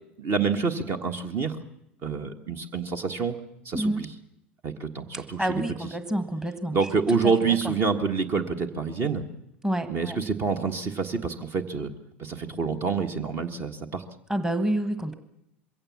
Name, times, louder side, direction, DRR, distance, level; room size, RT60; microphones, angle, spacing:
voice 1, 0.2-1.6 2.0-3.4 3.6-4.1 4.6-5.9 6.7-9.2 9.9-11.9 12.2-14.0, right 5 dB, 40° right, 7 dB, 1.4 m, -27 dB
voice 2, 3.7-4.0 5.4-6.8 9.6-10.2 14.3-15.1, right 1 dB, 10° right, 10 dB, 1.4 m, -28 dB
22.0 x 16.5 x 7.2 m, 0.82 s
figure-of-eight pair, 75°, 6 cm